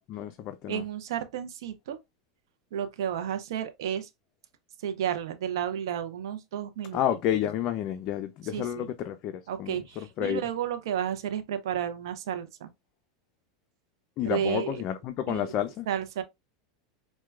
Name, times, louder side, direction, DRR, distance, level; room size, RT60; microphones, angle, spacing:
voice 1, 0.1-0.8 6.9-10.4 14.2-15.9, left 10 dB, 45° left, 0.3 m, -30 dB
voice 2, 0.7-2.0 2.7-4.1 4.8-7.0 8.5-8.9 9.5-12.7 14.2-14.8 15.3-15.5 15.9-16.2, right 9 dB, 75° right, 0.5 m, -32 dB
4.4 x 2.1 x 2.3 m
hypercardioid pair, 110°, 2 cm